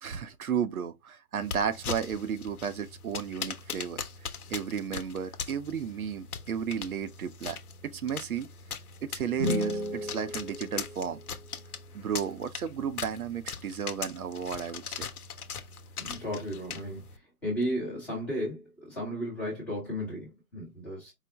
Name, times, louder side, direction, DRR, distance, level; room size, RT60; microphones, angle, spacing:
voice 1, 0.0-8.5 9.0-11.2 11.9-15.1, right 7 dB, 65° right, 0.6 m, -33 dB
sound 1, 1.4-17.2, left 6 dB, 70° left, 0.8 m, -40 dB
sound 2, 9.4-11.5, left 1 dB, 30° right, 0.5 m, -34 dB
voice 2, 16.0-17.0 17.4-21.1, equal, 5° left, 0.8 m, -34 dB
4.8 x 2.0 x 3.3 m
hypercardioid pair, 150°, 45 cm